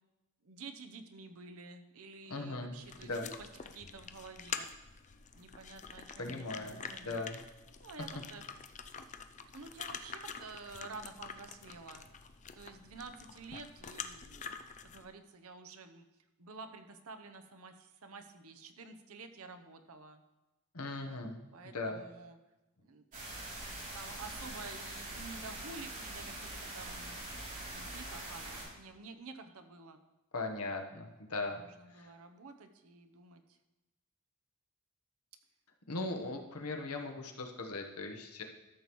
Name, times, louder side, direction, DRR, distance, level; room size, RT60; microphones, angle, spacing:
voice 1, 0.4-3.5 3.7-4.7 5.4-7.2 7.8-8.4 9.5-12.0 12.6-14.6 14.9-16.0 16.4-20.2 21.1-21.2 21.5-22.4 22.8-23.0 23.9-27.2 27.7-30.0 31.5-33.4 35.9-36.1, right 4 dB, 70° right, 8 dB, 0.8 m, -50 dB
voice 2, 2.3-2.7 3.0-3.3 6.2-7.4 20.7-21.4 21.7-22.0 30.3-31.6 31.9-32.1 35.9-38.4, left 2 dB, 80° left, 3 dB, 1.2 m, -39 dB
sound 1, 2.8-15.1, left 6 dB, 35° left, 0.5 m, -46 dB
sound 2, 23.1-28.6, right 1 dB, 40° right, 3.1 m, -43 dB
13.0 x 7.0 x 3.1 m, 1.1 s
head